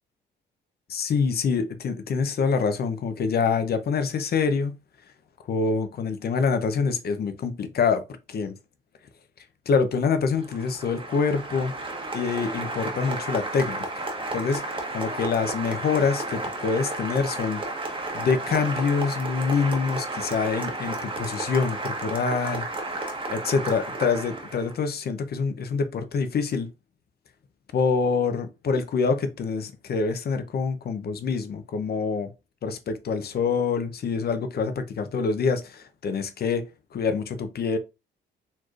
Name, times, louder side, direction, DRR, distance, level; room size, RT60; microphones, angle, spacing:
voice 1, 0.9-4.8 5.5-8.0 8.3-8.5 9.7-11.7 12.1-14.1 14.3-17.6 18.1-22.6 23.0-26.7 27.7-32.3 32.6-36.6 36.9-37.8, left 5 dB, 50° left, 0.7 m, -26 dB
Applause, 10.3-24.8, right 2 dB, 25° right, 1.1 m, -32 dB
4.3 x 3.0 x 2.5 m
cardioid pair, 90°, 20 cm